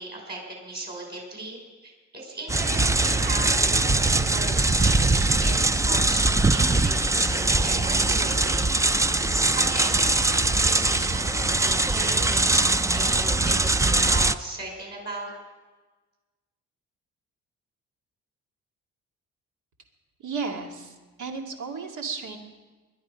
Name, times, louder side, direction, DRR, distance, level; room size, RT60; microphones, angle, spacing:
voice 1, 0.0-8.7 9.1-15.3, right 2 dB, 35° right, 0 dB, 5.7 m, -37 dB
sound 1, 2.5-14.3, right 2 dB, 10° right, 0.4 m, -22 dB
voice 2, 20.2-22.4, right 5 dB, 75° right, 2 dB, 2.3 m, -34 dB
21.0 x 12.0 x 5.1 m, 1.3 s
cardioid pair, 90°, 30 cm